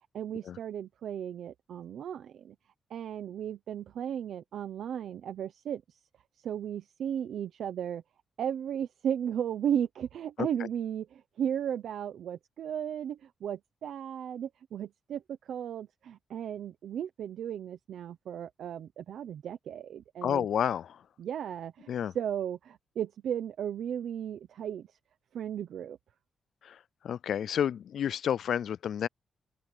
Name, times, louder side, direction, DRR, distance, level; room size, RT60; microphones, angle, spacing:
voice 1, 0.1-2.5 2.9-6.0 6.4-8.0 8.4-20.5 21.2-25.0 25.3-26.0, right 9 dB, 75° right, 0.9 m, -35 dB
voice 2, 20.2-21.0 21.9-22.1 26.6-29.1, left 9 dB, 65° left, 0.3 m, -30 dB
open air
cardioid pair, 135°, 0 cm